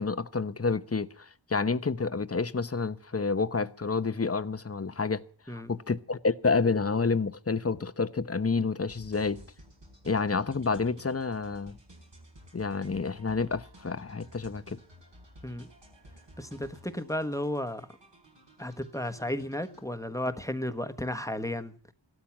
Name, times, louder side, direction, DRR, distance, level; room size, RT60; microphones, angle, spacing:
voice 1, 0.0-5.2 5.7-9.4 10.0-11.8 12.5-14.8, left 4 dB, 30° left, 0.9 m, -29 dB
sound 1, 8.9-19.9, equal, 70° right, 5.1 m, -54 dB
voice 2, 16.4-17.9 18.6-21.7, left 1 dB, 5° left, 1.2 m, -33 dB
16.0 x 13.0 x 5.9 m
wide cardioid pair, 75°, 45 cm